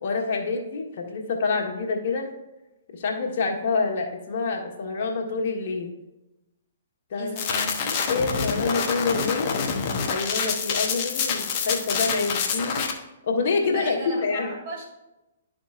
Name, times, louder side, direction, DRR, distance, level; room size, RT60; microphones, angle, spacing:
voice 1, 0.0-2.3 2.9-5.9 7.1-7.3 7.8-9.6 10.0-12.8 13.2-14.5, left 4 dB, 60° left, 1 dB, 1.3 m, -27 dB
voice 2, 7.2-7.9 13.6-14.9, right 2 dB, 45° right, 0 dB, 2.5 m, -36 dB
sound 1, 7.4-12.9, left 6 dB, 40° left, 0.9 m, -27 dB
11.5 x 5.1 x 2.5 m, 0.97 s
hypercardioid pair, 135°, 0 cm